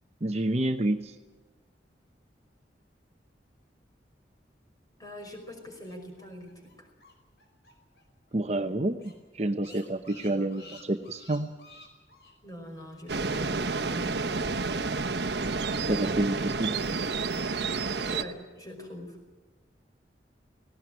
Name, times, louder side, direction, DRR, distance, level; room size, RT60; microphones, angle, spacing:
voice 1, 0.2-1.1 8.3-11.5 15.9-16.8, right 1 dB, 40° right, 7 dB, 0.9 m, -28 dB
voice 2, 5.0-6.9 10.3-10.6 12.4-15.0 18.1-19.2, left 1 dB, 20° left, 2 dB, 5.4 m, -43 dB
sound 1, 5.6-8.0 8.3-8.4 8.7-8.8 9.0-12.3, left 3 dB, 70° left, 5.2 m, -53 dB
sound 2, 13.1-18.2, right 4 dB, 75° right, 1.0 m, -30 dB
18.5 x 17.5 x 9.1 m, 1.2 s
head